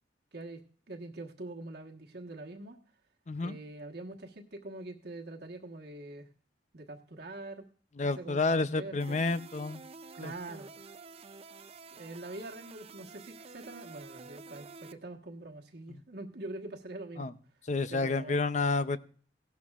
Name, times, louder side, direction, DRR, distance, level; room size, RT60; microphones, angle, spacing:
voice 1, 0.9-2.8 3.4-6.3 6.7-7.6 8.2-9.2 10.1-10.7 11.9-17.4 17.9-18.4, right 2 dB, 60° right, 2 dB, 1.3 m, -44 dB
voice 2, 3.3-3.6 8.0-9.8 10.2-10.3 15.9-16.0 17.2-17.3 17.7-19.0, left 3 dB, 40° left, 13 dB, 0.6 m, -30 dB
sound 1, 9.0-14.9, right 4 dB, 35° right, 0.5 m, -50 dB
16.5 x 11.5 x 2.4 m, 0.43 s
head